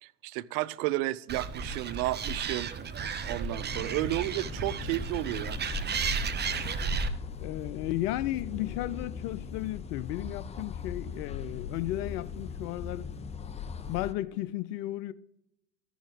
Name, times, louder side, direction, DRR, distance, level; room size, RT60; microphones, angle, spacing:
voice 1, 0.0-2.7 3.2-5.6, right 17 dB, 65° right, 0.6 m, -32 dB
Animal, 1.3-7.1, right 5 dB, 20° right, 0.7 m, -33 dB
sound 1, 3.7-14.1, left 6 dB, 15° left, 0.4 m, -40 dB
voice 2, 7.4-13.1 13.9-15.1, left 15 dB, 70° left, 0.6 m, -34 dB
14.0 x 6.2 x 3.5 m
hypercardioid pair, 80°, 48 cm